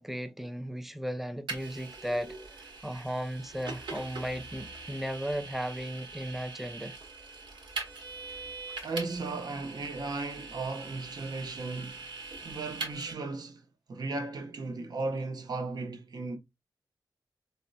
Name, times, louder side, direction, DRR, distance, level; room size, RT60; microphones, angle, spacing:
voice 1, 0.0-6.9, equal, 5° right, 0.3 m, -36 dB
Vehicle, 1.5-13.1, right 3 dB, 90° right, 1.0 m, -42 dB
voice 2, 8.8-12.1 12.4-16.4, right 3 dB, 60° right, 0.7 m, -36 dB
4.1 x 2.1 x 2.5 m
wide cardioid pair, 115°, 8 cm